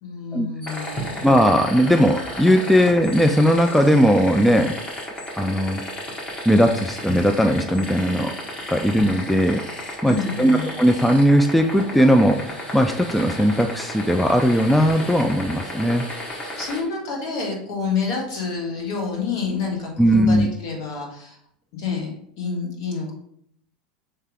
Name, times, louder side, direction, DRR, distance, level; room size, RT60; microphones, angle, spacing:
voice 1, 0.0-1.2 10.0-10.7 16.6-21.4 21.7-23.1, left 5 dB, 55° left, 0 dB, 1.6 m, -28 dB
sound 1, 0.6-16.8, left 1 dB, 25° left, 1.5 m, -33 dB
voice 2, 1.2-4.8 5.3-5.8 6.5-8.3 8.7-9.6 10.0-16.1 20.0-20.5, equal, ahead, 5 dB, 0.3 m, -18 dB
3.3 x 3.3 x 4.6 m, 0.68 s
figure-of-eight pair, 80°, 4 cm